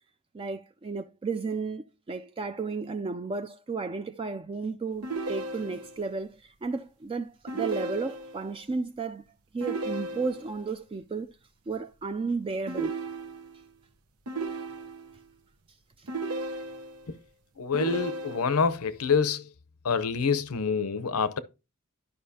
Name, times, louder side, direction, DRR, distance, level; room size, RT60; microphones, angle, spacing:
voice 1, 0.3-9.2 9.5-11.3 11.7-13.0 16.0-16.1, right 4 dB, 25° right, 0.3 m, -33 dB
sound 1, 5.0-6.1 7.5-8.5 9.6-10.6 12.7-13.7 14.3-15.2 16.1-17.1 17.7-18.7, right 2 dB, 90° right, 0.9 m, -35 dB
voice 2, 17.6-19.4 19.8-21.4, left 5 dB, 90° left, 0.8 m, -26 dB
12.0 x 5.5 x 2.8 m
head